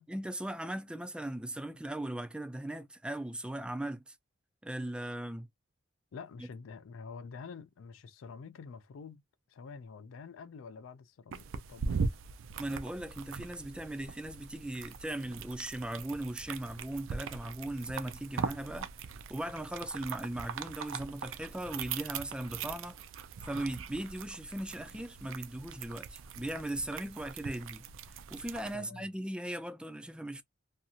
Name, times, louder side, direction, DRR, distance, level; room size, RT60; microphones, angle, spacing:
voice 1, 0.1-4.1 4.6-5.5 12.6-18.9 19.3-23.0 23.4-27.8 28.3-30.4, right 1 dB, 5° right, 0.3 m, -38 dB
voice 2, 6.1-9.2 9.5-12.0 28.7-29.1, left 5 dB, 85° left, 0.4 m, -47 dB
sound 1, 11.3-28.8, right 5 dB, 75° right, 0.4 m, -41 dB
2.6 x 2.4 x 2.7 m
head